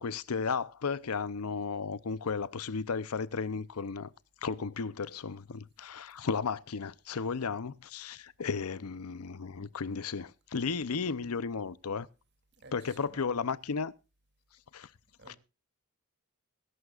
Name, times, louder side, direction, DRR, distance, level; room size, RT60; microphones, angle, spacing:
voice 1, 0.0-4.1 4.4-12.1 12.7-13.9 14.7-14.9 15.3-15.4, left 5 dB, 80° left, 0.7 m, -34 dB
voice 2, 12.5-13.4 15.2-15.4, right 2 dB, 50° right, 2.8 m, -54 dB
21.0 x 11.0 x 2.4 m
head